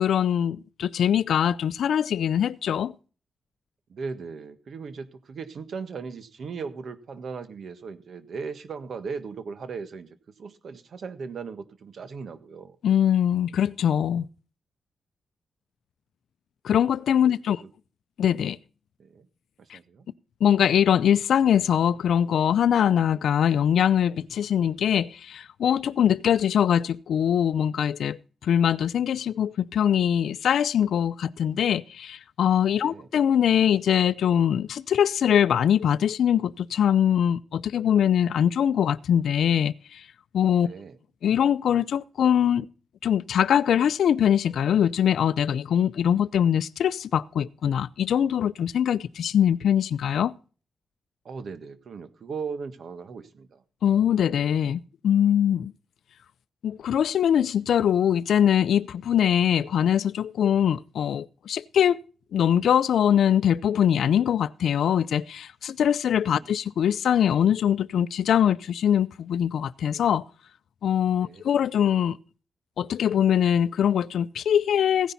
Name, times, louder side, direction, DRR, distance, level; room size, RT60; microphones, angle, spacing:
voice 1, 0.0-2.9 12.8-14.3 16.6-17.6 18.2-18.6 19.7-19.8 20.4-40.1 40.3-40.7 41.2-42.7 43.0-50.3 53.8-55.7 56.6-62.0 62.3-70.2 70.8-72.2 72.8-75.1, left 9 dB, 80° left, 0.5 m, -22 dB
voice 2, 3.9-12.8 17.2-17.7 19.0-19.3 19.6-20.0 32.7-33.1 40.6-41.0 51.2-53.6 66.3-66.6 71.2-71.5, right 5 dB, 55° right, 1.5 m, -38 dB
16.0 x 10.0 x 4.1 m
wide cardioid pair, 145°, 0 cm